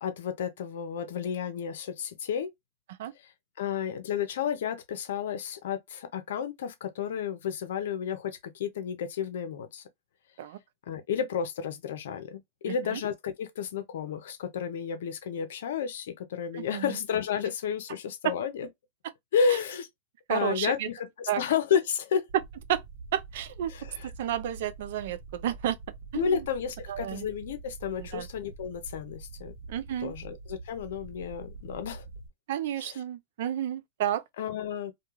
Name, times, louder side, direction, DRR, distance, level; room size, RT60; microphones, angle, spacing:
voice 1, 0.0-2.5 3.6-9.8 10.9-18.7 19.3-19.9 20.3-22.2 23.7-24.1 26.1-29.5 30.0-32.0 32.8-33.0 34.4-34.9, left 7 dB, 70° left, 0.7 m, -31 dB
voice 2, 12.7-13.0 16.5-17.0 20.3-20.9 21.3-21.4 22.7-22.8 23.1-23.7 24.2-25.8 26.1-26.5 26.9-27.3 28.0-28.3 29.7-30.1 32.5-34.2, right 11 dB, 65° right, 0.4 m, -31 dB
sound 1, 22.3-32.3, right 3 dB, 45° right, 0.8 m, -45 dB
2.3 x 2.3 x 3.0 m
hypercardioid pair, 115°, 0 cm